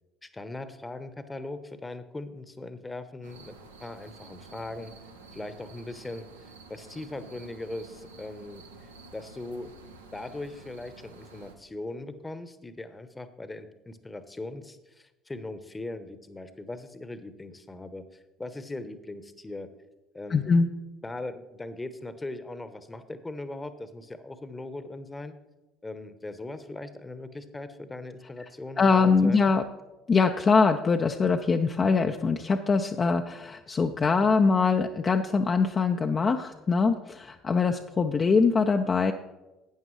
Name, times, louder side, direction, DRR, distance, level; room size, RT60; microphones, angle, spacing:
voice 1, 0.2-3.5 3.8-4.9 5.3-8.6 9.1-9.7 10.1-19.7 20.1-20.5 21.0-25.4 25.8-29.5, left 2 dB, 15° left, 11 dB, 0.9 m, -39 dB
sound 1, 3.2-11.6, right 3 dB, 85° right, 0.8 m, -50 dB
voice 2, 20.3-20.7 28.8-29.6 30.1-39.1, left 4 dB, 35° left, 4 dB, 0.5 m, -23 dB
12.0 x 8.9 x 3.2 m, 1.1 s
hypercardioid pair, 60°, 0 cm